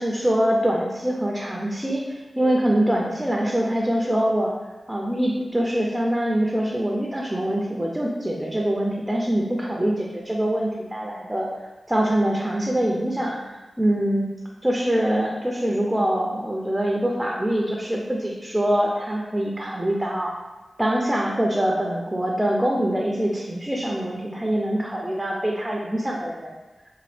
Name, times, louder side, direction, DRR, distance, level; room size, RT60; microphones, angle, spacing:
voice 1, 0.0-4.5 4.9-11.5 11.9-14.3 14.6-20.4 20.8-26.5, right 1 dB, 10° right, -1 dB, 0.5 m, -24 dB
3.9 x 2.5 x 3.1 m, 1.2 s
cardioid pair, 65°, 0 cm